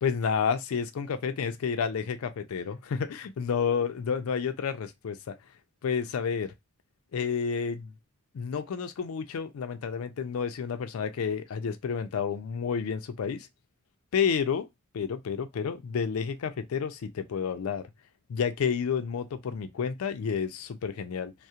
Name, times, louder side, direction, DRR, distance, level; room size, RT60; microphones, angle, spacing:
voice 1, 0.0-5.4 5.8-6.5 7.1-7.9 8.3-13.5 14.1-14.7 14.9-17.9 18.3-21.3, left 6 dB, 90° left, 0.4 m, -30 dB
2.3 x 2.0 x 2.7 m
head